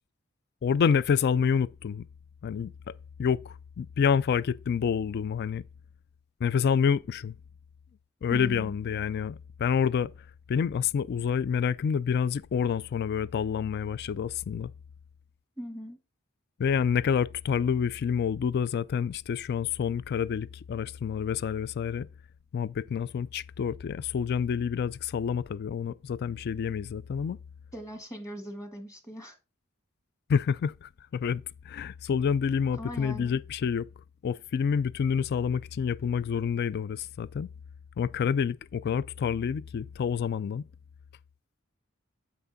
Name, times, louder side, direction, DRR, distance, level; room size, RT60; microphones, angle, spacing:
voice 1, 0.6-2.1 2.4-2.9 3.2-5.6 6.4-7.4 8.2-10.1 10.5-14.7 16.6-22.1 22.5-27.4 30.3-33.9 34.2-37.5 38.0-40.6, left 7 dB, 50° left, 0.3 m, -28 dB
voice 2, 8.3-8.8 15.6-16.0 27.7-29.3 32.8-33.4, equal, 15° left, 1.5 m, -40 dB
8.0 x 5.9 x 4.0 m
head